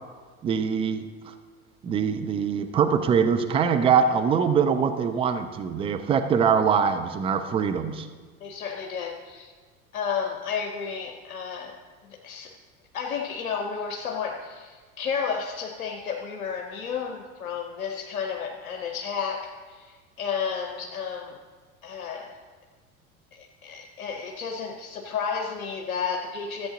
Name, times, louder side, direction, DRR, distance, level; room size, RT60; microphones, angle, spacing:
voice 1, 0.4-1.3 1.8-8.1, right 6 dB, 15° right, 8 dB, 0.4 m, -23 dB
voice 2, 8.4-9.5 9.9-12.5 12.9-21.4 21.8-22.3 23.3-26.7, left 6 dB, 70° left, 3 dB, 0.9 m, -32 dB
13.5 x 7.8 x 3.8 m, 1.5 s
figure-of-eight pair, 75°, 44 cm